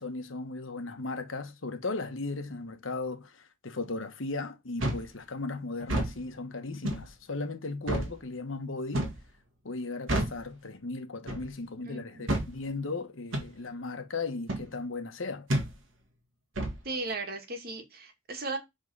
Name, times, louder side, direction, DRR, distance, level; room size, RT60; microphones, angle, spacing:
voice 1, 0.0-9.1 9.6-15.5, left 3 dB, 90° left, 1.2 m, -36 dB
sound 1, 4.8-5.1 5.8-6.1 6.8-7.1 7.9-8.1 8.9-9.2 10.1-10.4 11.3-11.5 12.3-12.5 13.3-13.5 14.5-14.7 15.5-15.7 16.6-16.8, right 1 dB, 90° right, 1.8 m, -29 dB
voice 2, 11.9-12.3 16.8-18.6, right 3 dB, 50° right, 1.8 m, -36 dB
7.1 x 3.8 x 5.5 m
head